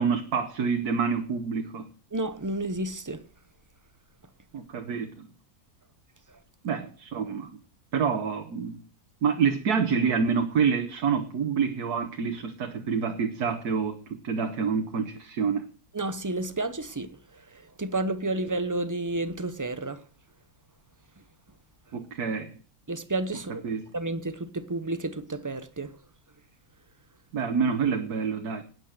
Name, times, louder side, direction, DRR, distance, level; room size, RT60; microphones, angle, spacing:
voice 1, 0.0-1.9 4.5-5.3 6.6-7.5 7.9-8.8 9.2-14.0 14.2-15.6 21.9-22.5 23.6-23.8 27.3-28.6, right 6 dB, 90° right, 1.7 m, -27 dB
voice 2, 2.1-3.2 15.9-17.1 17.5-20.0 22.9-23.6 23.9-25.9, right 2 dB, 20° right, 0.6 m, -31 dB
12.0 x 9.2 x 6.6 m
omnidirectional pair, 1.6 m